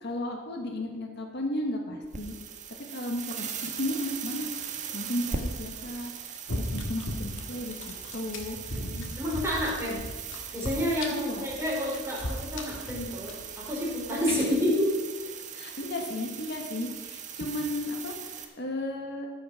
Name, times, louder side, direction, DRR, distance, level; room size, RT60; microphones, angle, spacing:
voice 1, 0.0-2.4 2.9-4.5 4.9-8.6 11.1-11.5 14.3-14.4 15.5-19.3, left 1 dB, 60° left, 1 dB, 1.6 m, -34 dB
sound 1, 2.0-18.5, right 6 dB, 40° right, 1.2 m, -40 dB
sound 2, 6.5-14.6, left 1 dB, 80° left, 1.8 m, -38 dB
voice 2, 8.7-10.0 10.5-14.9, equal, 15° right, -5 dB, 3.8 m, -29 dB
14.0 x 6.4 x 6.0 m, 1.3 s
head